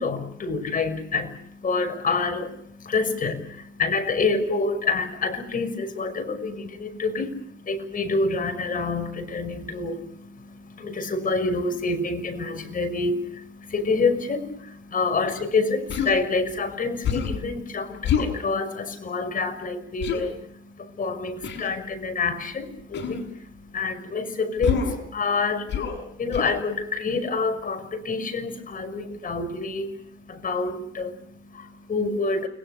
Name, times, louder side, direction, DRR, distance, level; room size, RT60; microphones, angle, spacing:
voice 1, 0.0-32.5, left 3 dB, 45° left, 7 dB, 6.1 m, -27 dB
Human voice, 15.9-16.2 17.0-17.4 18.0-18.3 20.0-20.2 21.4-21.7 22.9-23.2 24.6-25.0 25.7-26.0 26.3-26.6, left 7 dB, 65° left, 7.2 m, -26 dB
30.0 x 22.5 x 6.7 m, 0.66 s
cardioid pair, 90°, 20 cm